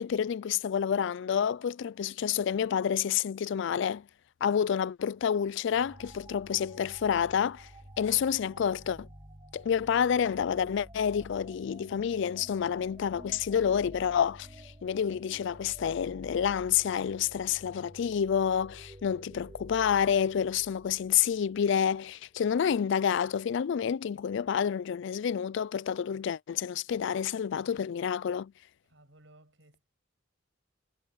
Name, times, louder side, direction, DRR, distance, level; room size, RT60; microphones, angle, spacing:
voice 1, 0.0-4.1 4.4-7.7 8.0-9.1 9.5-28.5, left 8 dB, 65° left, 0.3 m, -29 dB
sound 1, 5.7-22.1, equal, 20° right, 2.6 m, -51 dB
voice 2, 9.8-10.6 28.8-29.9, right 2 dB, 65° right, 7.6 m, -59 dB
head